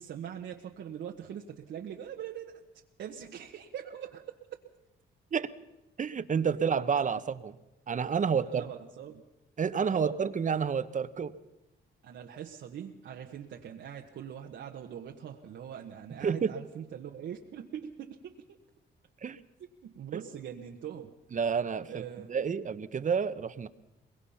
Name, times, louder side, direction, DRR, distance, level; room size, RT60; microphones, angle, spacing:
voice 1, 0.0-2.6 3.0-4.3 8.3-9.2 9.9-10.2 12.0-18.6 19.8-21.1 21.9-22.3, right 9 dB, 70° right, 1 dB, 1.4 m, -42 dB
voice 2, 6.0-7.5 7.9-8.6 9.6-11.3 16.2-16.5 19.2-19.4 21.3-23.7, right 6 dB, 40° right, 13 dB, 1.1 m, -29 dB
23.0 x 21.5 x 5.8 m, 0.96 s
cardioid pair, 90°, 20 cm